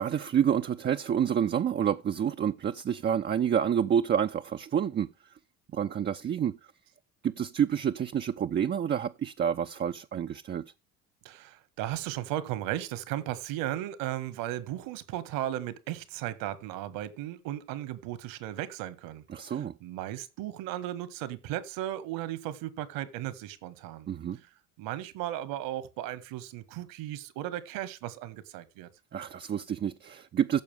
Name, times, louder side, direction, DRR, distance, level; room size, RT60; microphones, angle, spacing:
voice 1, 0.0-5.1 5.7-6.6 7.2-10.6 19.3-19.7 24.1-24.4 29.1-30.6, right 8 dB, 30° right, 0.6 m, -28 dB
voice 2, 11.2-24.1 24.8-28.9, right 13 dB, 65° right, 1.6 m, -36 dB
15.0 x 6.9 x 3.4 m
hypercardioid pair, 70°, 37 cm